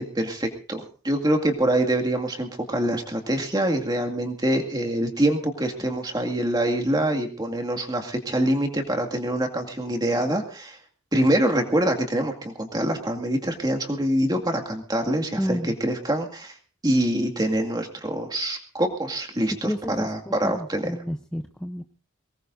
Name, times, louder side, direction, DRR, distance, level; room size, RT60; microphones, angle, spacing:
voice 1, 0.0-10.8 11.1-16.5 16.8-20.9, right 1 dB, 20° right, 4 dB, 2.1 m, -25 dB
voice 2, 15.4-15.7 19.6-20.1 20.4-21.8, equal, 5° left, 5 dB, 0.7 m, -30 dB
23.0 x 19.0 x 2.6 m, 0.38 s
head